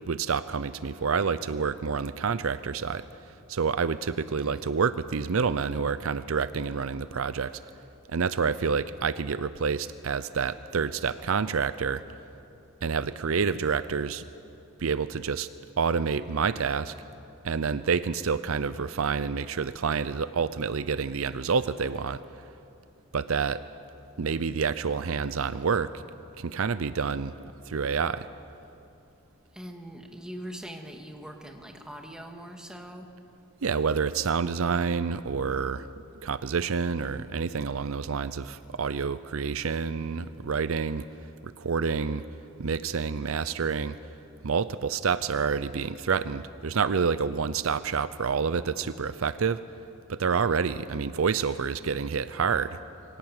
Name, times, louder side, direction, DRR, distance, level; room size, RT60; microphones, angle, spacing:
voice 1, 0.0-3.0 3.5-7.6 8.1-12.0 12.8-14.2 14.8-15.5 15.8-16.9 17.4-22.2 23.1-23.6 24.2-25.9 26.4-28.3 33.6-35.9 36.2-41.1 41.4-42.2 42.6-44.0 44.4-49.6 50.1-52.8, right 5 dB, 70° right, 14 dB, 0.6 m, -28 dB
voice 2, 4.3-4.7 29.5-33.1, equal, 5° right, 2 dB, 1.9 m, -42 dB
23.0 x 17.0 x 8.9 m, 2.7 s
head